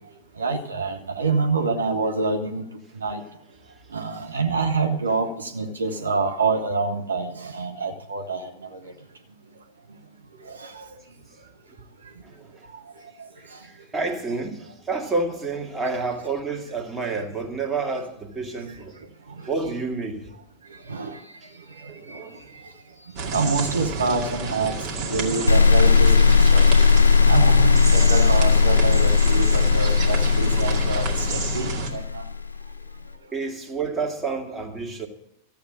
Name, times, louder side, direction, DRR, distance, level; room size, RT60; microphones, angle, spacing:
voice 1, 0.4-2.6 3.0-3.2 3.9-8.4 20.9-21.2 22.1-22.2 23.3-24.7 25.0-26.6 27.3-32.2, right 3 dB, 75° right, 1.0 m, -26 dB
voice 2, 12.2-12.7 13.4-19.0 19.4-20.3 21.9-22.5 33.3-35.1, right 3 dB, 15° right, 2.1 m, -29 dB
sound 1, 23.2-31.9, right 4 dB, 40° right, 2.3 m, -30 dB
sound 2, 25.5-32.6, left 5 dB, 80° left, 0.5 m, -17 dB
14.0 x 8.3 x 7.8 m
figure-of-eight pair, 90°, 0 cm